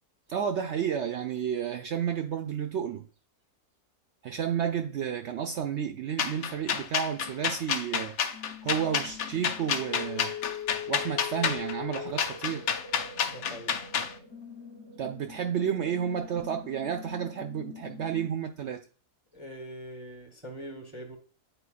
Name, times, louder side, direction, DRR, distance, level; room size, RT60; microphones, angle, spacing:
voice 1, 0.3-3.0 4.2-8.1 8.6-10.3 10.9-12.7 15.0-18.8, right 8 dB, 75° right, 0.6 m, -31 dB
sound 1, 6.2-14.1, left 7 dB, 65° left, 1.1 m, -30 dB
sound 2, 8.3-18.3, left 8 dB, 35° left, 0.4 m, -43 dB
voice 2, 13.2-13.8 19.3-21.2, equal, 25° right, 0.7 m, -43 dB
9.0 x 4.5 x 2.4 m
omnidirectional pair, 1.7 m